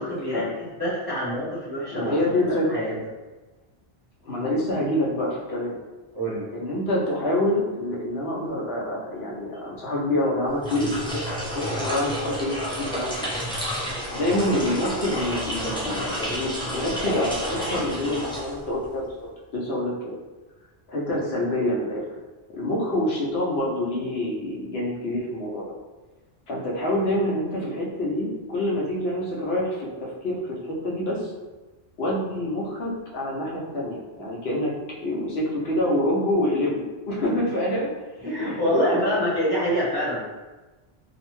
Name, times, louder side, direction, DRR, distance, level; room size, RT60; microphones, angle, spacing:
voice 1, 0.0-3.0 6.1-6.4 38.2-40.2, equal, 25° right, -9 dB, 0.7 m, -26 dB
voice 2, 1.9-2.7 4.2-5.7 6.5-11.1 11.5-13.2 14.1-19.0 19.5-20.2 20.9-22.0 22.5-25.6 26.5-31.3 32.0-34.7 35.0-37.9 38.2-39.3 40.1-40.2, left 1 dB, 75° left, -4 dB, 0.9 m, -26 dB
sound 1, 10.5-18.9, equal, 10° left, 0.3 m, -30 dB
2.7 x 2.1 x 3.0 m, 1.2 s
omnidirectional pair, 1.1 m